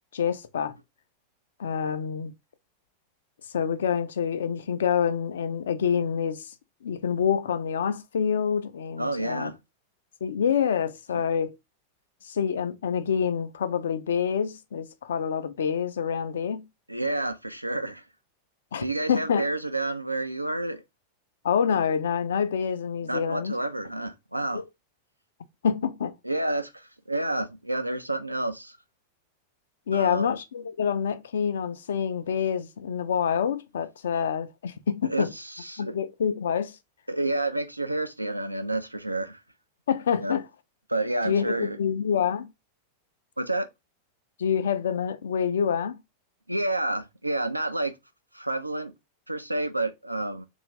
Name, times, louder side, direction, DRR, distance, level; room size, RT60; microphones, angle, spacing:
voice 1, 0.1-0.7 1.6-2.3 3.5-6.5 6.8-9.5 10.2-11.5 12.2-16.6 18.7-19.5 21.4-23.6 25.6-26.1 29.9-35.3 35.8-36.8 39.9-40.5 41.2-42.5 44.4-46.0, left 7 dB, 65° left, 0.3 m, -27 dB
voice 2, 9.0-9.6 16.9-18.0 18.8-20.8 23.0-24.6 26.2-28.8 29.9-30.4 35.0-35.9 37.1-39.4 40.2-40.3 40.9-41.8 43.4-43.7 46.5-47.9 48.3-48.9 49.3-50.5, right 2 dB, 85° right, 0.3 m, -29 dB
2.7 x 2.3 x 2.9 m
figure-of-eight pair, 90°, 0 cm